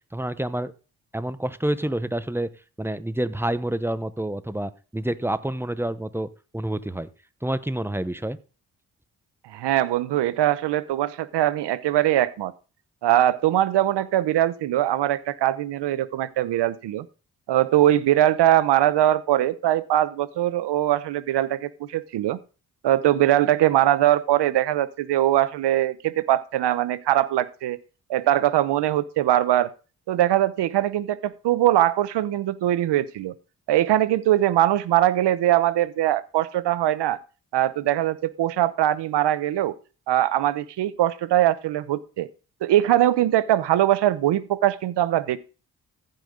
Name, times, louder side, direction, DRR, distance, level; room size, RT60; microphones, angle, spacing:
voice 1, 0.1-0.7 1.1-2.5 2.8-7.1 7.4-8.4, right 1 dB, 5° right, 14 dB, 1.0 m, -28 dB
voice 2, 9.5-12.5 13.0-17.1 17.5-22.4 22.8-27.8 28.1-29.7 30.1-33.3 33.7-37.2 37.5-39.7 40.1-42.3 42.6-45.4, right 13 dB, 80° right, 17 dB, 0.8 m, -21 dB
15.0 x 5.4 x 3.8 m, 0.33 s
supercardioid pair, 45°, 41 cm